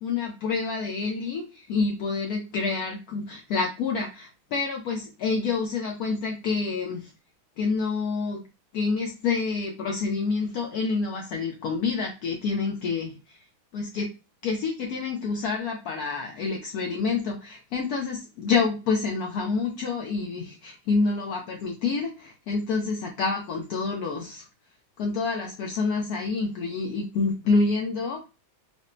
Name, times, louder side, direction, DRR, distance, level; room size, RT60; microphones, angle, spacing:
voice 1, 0.0-7.1 7.6-8.4 8.7-13.4 13.7-14.1 14.4-24.4 25.0-28.3, left 4 dB, 80° left, 1 dB, 0.8 m, -28 dB
4.9 x 2.1 x 2.6 m, 0.29 s
omnidirectional pair, 2.2 m